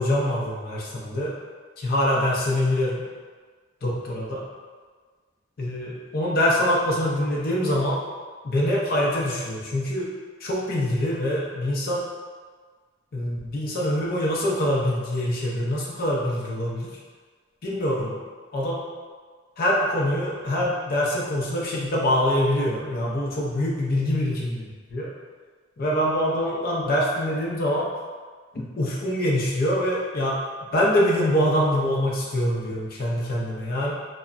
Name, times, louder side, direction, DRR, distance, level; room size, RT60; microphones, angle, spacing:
voice 1, 0.0-1.3 1.8-3.0 3.8-4.4 5.6-8.0 8.4-10.1 10.4-12.0 13.1-16.9 17.6-18.2 18.5-18.8 19.6-25.1 25.8-27.9 28.5-30.4 30.7-33.9, left 1 dB, 50° left, -4 dB, 0.4 m, -24 dB
3.3 x 2.0 x 2.4 m, 1.5 s
head